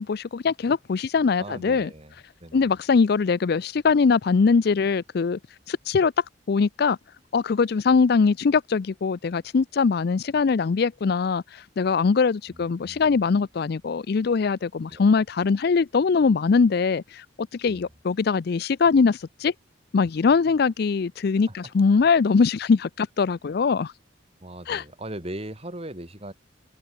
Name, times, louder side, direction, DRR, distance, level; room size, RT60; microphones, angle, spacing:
voice 1, 0.0-1.9 2.5-5.4 5.7-6.1 6.5-7.0 7.3-19.5 19.9-23.9 24.7-24.8, left 5 dB, 55° left, 0.4 m, -22 dB
voice 2, 1.4-2.1 2.4-2.8 12.5-13.2 14.9-15.0 17.7-17.9 21.4-21.6 24.4-26.3, right 1 dB, 30° right, 3.8 m, -39 dB
open air
head